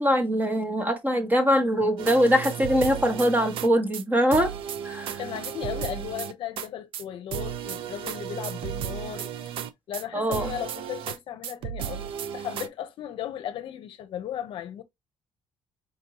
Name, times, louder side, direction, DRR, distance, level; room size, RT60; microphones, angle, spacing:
voice 1, 0.0-4.5 4.8-5.2 10.1-10.5, equal, 20° right, 1.1 m, -22 dB
sound 1, 2.0-3.7 3.9-4.0 4.3-6.7 6.9-7.0 7.3-10.0 10.3-11.2 11.4-12.7, right 9 dB, 70° right, 0.5 m, -34 dB
voice 2, 5.2-9.5 9.9-14.8, left 10 dB, 65° left, 0.7 m, -36 dB
5.1 x 2.7 x 2.9 m
cardioid pair, 120°, 10 cm